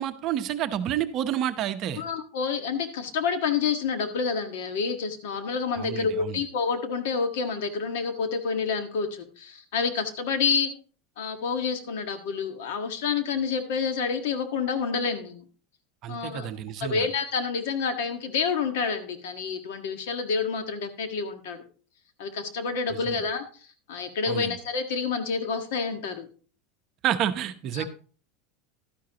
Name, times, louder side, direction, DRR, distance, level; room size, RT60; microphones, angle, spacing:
voice 1, 0.0-2.0 5.8-6.4 16.0-17.1 22.9-23.2 24.3-24.5 27.0-27.8, right 11 dB, 40° right, 9 dB, 0.8 m, -29 dB
voice 2, 2.0-10.7 11.2-15.4 16.1-16.5 16.8-21.6 22.2-23.5 23.9-26.3 27.7-27.8, left 5 dB, 75° left, 7 dB, 1.6 m, -28 dB
12.0 x 10.0 x 2.9 m, 0.40 s
supercardioid pair, 155°, 0 cm